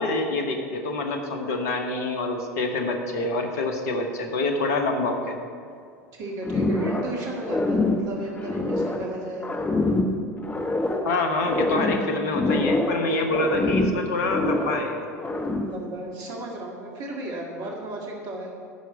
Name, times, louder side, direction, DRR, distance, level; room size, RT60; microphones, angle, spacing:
voice 1, 0.0-5.3 11.0-15.1, left 2 dB, 65° left, 5 dB, 1.3 m, -26 dB
voice 2, 6.1-9.7 13.3-13.8 15.6-18.5, right 1 dB, 45° right, -1 dB, 1.9 m, -35 dB
sound 1, 6.4-7.2 7.4-9.1 9.4-11.1 11.4-13.0 13.3-14.8 15.2-15.8, left 2 dB, 20° left, 1.2 m, -25 dB
12.0 x 4.8 x 8.1 m, 2.2 s
figure-of-eight pair, 75°, 9 cm